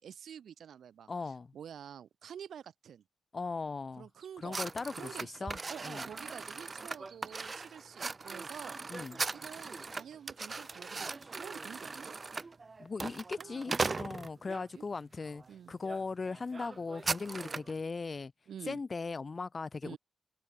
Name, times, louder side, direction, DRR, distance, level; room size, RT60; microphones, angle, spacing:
voice 1, 0.0-3.0 4.0-4.6 5.0-8.8 9.3-12.1 13.4-14.0 14.6-14.8 15.5-15.7 18.5-18.8 19.8-20.0, right 8 dB, 75° right, 3.2 m, -48 dB
voice 2, 1.1-1.5 3.3-4.1 4.4-5.6 5.8-6.0 8.9-9.2 12.8-18.3 18.7-20.0, left 4 dB, 30° left, 0.4 m, -38 dB
sound 1, 4.2-4.5 6.2-7.3 7.8-8.1 8.8-11.0 11.3-11.4, right 6 dB, 50° right, 4.4 m, -63 dB
sound 2, 4.5-14.6 15.3-15.5 15.8-16.0 16.3-17.8, right 4 dB, 25° right, 0.9 m, -39 dB
open air
wide cardioid pair, 175°, 0 cm